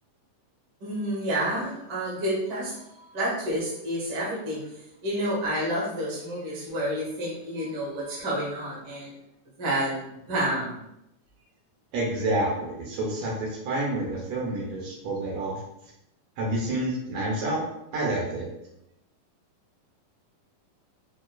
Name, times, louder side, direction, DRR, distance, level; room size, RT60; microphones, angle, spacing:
voice 1, 0.8-2.8 3.1-4.6 5.0-9.1 9.6-10.8, right 1 dB, 50° right, -6 dB, 1.7 m, -29 dB
voice 2, 11.9-15.6 16.4-17.6 17.9-18.5, right 1 dB, 90° right, -4 dB, 1.4 m, -28 dB
6.2 x 2.4 x 2.3 m, 0.84 s
omnidirectional pair, 4.0 m